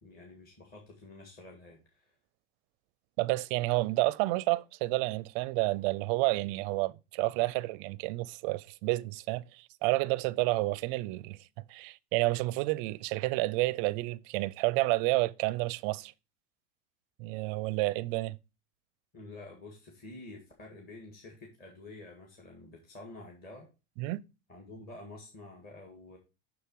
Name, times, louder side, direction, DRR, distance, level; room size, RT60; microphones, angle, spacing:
voice 1, 0.0-2.2 19.1-23.7 24.5-26.2, left 2 dB, 25° left, 1.8 m, -49 dB
voice 2, 3.2-11.4 11.7-16.1 17.2-18.4 24.0-24.2, right 21 dB, 45° right, 0.4 m, -30 dB
6.7 x 6.4 x 4.5 m
supercardioid pair, 160°, 37 cm